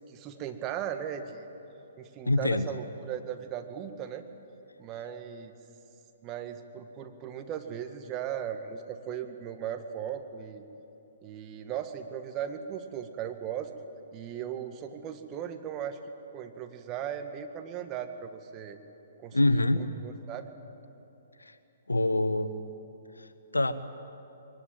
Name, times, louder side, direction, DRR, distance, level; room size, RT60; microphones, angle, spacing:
voice 1, 0.1-1.5 2.0-4.3 4.8-5.5 6.2-10.6 11.2-13.7 14.1-16.0 16.3-18.8 19.2-20.5, right 9 dB, 30° right, 7 dB, 1.7 m, -37 dB
voice 2, 2.2-2.7 19.3-19.8 21.4-21.5 21.9-22.5 23.5-23.7, left 2 dB, 85° left, 11 dB, 1.2 m, -25 dB
22.0 x 19.5 x 9.0 m, 2.9 s
figure-of-eight pair, 125°, 0 cm